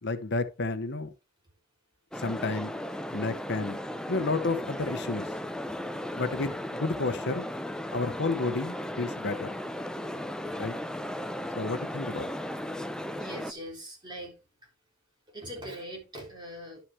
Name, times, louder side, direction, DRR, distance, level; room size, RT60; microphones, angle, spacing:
voice 1, 0.0-1.1 2.2-2.7 3.1-3.8 4.1-5.3 6.2-7.5 7.9-9.5 10.6-10.7 11.6-12.3, left 3 dB, 55° left, 0.8 m, -31 dB
sound 1, 2.1-13.5, left 1 dB, 5° left, 0.5 m, -36 dB
voice 2, 13.1-14.7 15.3-16.8, right 1 dB, 20° right, 3.7 m, -42 dB
11.0 x 5.8 x 3.5 m
head